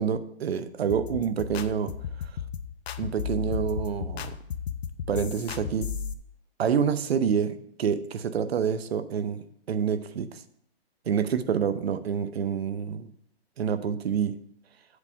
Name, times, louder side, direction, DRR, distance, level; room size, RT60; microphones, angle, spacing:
voice 1, 0.0-1.9 3.0-4.4 5.1-5.9 6.6-10.4 11.1-13.1 13.6-14.4, right 7 dB, 70° right, 0.7 m, -27 dB
sound 1, 0.9-6.1, left 7 dB, 75° left, 0.6 m, -34 dB
8.0 x 3.6 x 6.6 m
hypercardioid pair, 180°, 32 cm